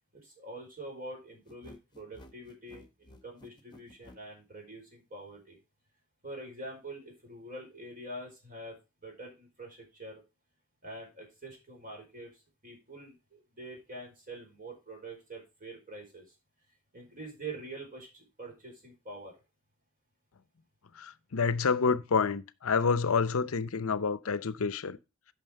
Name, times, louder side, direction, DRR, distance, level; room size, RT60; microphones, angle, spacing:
voice 1, 0.2-5.6 6.2-8.7 9.0-10.2 10.8-16.3 16.9-19.3, right 2 dB, 40° right, 4.5 m, -45 dB
sound 1, 1.5-4.2, left 1 dB, 20° left, 1.1 m, -53 dB
voice 2, 21.0-25.0, left 5 dB, 70° left, 0.7 m, -28 dB
9.3 x 6.0 x 4.4 m
head